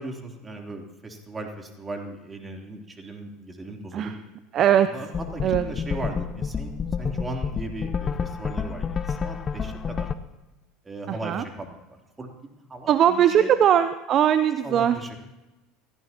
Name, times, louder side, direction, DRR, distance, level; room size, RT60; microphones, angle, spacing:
voice 1, 0.0-4.2 4.9-6.7 7.0-10.1 10.8-11.7 12.2-13.5 14.6-15.3, right 2 dB, 20° right, 2 dB, 3.4 m, -37 dB
voice 2, 4.5-4.9 5.4-5.7 11.1-11.4 12.9-15.0, right 10 dB, 45° right, 12 dB, 0.7 m, -20 dB
sound 1, 5.1-10.1, left 6 dB, 30° left, 0.8 m, -29 dB
29.0 x 15.5 x 3.0 m, 1.1 s
hypercardioid pair, 75°, 0 cm